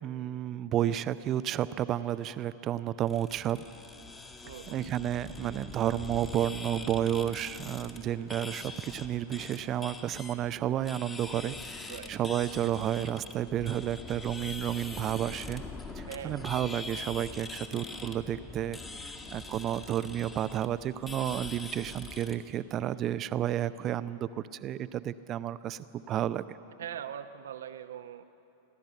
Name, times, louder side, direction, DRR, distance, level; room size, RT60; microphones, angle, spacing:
voice 1, 0.0-3.6 4.7-15.6 16.0-26.4, right 11 dB, 30° right, 14 dB, 0.6 m, -31 dB
sound 1, 3.1-22.3, left 3 dB, 20° left, 1.8 m, -44 dB
voice 2, 4.4-4.9 11.9-12.1 16.1-16.5 26.8-28.3, right 9 dB, 60° right, 11 dB, 0.9 m, -41 dB
28.5 x 13.0 x 8.4 m, 2.9 s
figure-of-eight pair, 90°, 0 cm